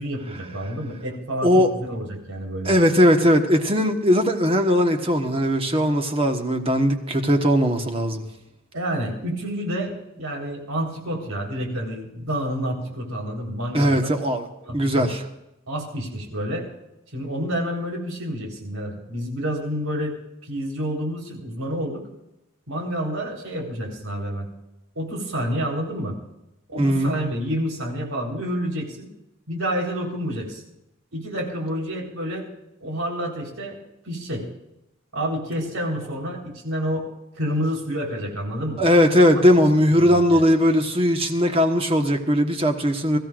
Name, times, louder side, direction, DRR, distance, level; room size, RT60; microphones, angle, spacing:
voice 1, 0.0-2.7 8.7-14.1 14.6-15.0 15.7-16.7 17.1-20.2 20.5-22.0 22.7-24.5 25.0-26.2 26.7-29.1 29.5-30.6 31.1-32.4 32.8-33.8 34.0-34.5 35.1-37.1 37.4-38.9 39.3-39.4 39.9-40.5, equal, 90° right, 0 dB, 4.2 m, -29 dB
voice 2, 2.6-8.2 13.7-14.5 14.7-15.2 26.8-27.1 38.8-43.2, equal, 25° right, 4 dB, 1.3 m, -19 dB
23.5 x 14.0 x 2.5 m, 0.89 s
head